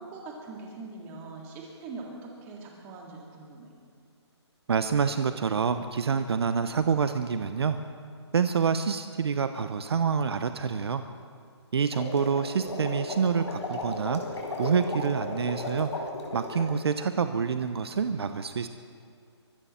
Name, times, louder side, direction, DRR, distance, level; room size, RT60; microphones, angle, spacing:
voice 1, 0.0-3.7 12.1-12.2, right 3 dB, 15° right, -1 dB, 2.1 m, -42 dB
voice 2, 4.7-7.8 8.3-11.0 11.7-18.7, right 6 dB, 65° right, 9 dB, 0.8 m, -27 dB
sound 1, 11.9-16.7, left 2 dB, 80° left, 4.6 m, -35 dB
23.5 x 14.0 x 4.3 m, 2.3 s
hypercardioid pair, 165°, 15 cm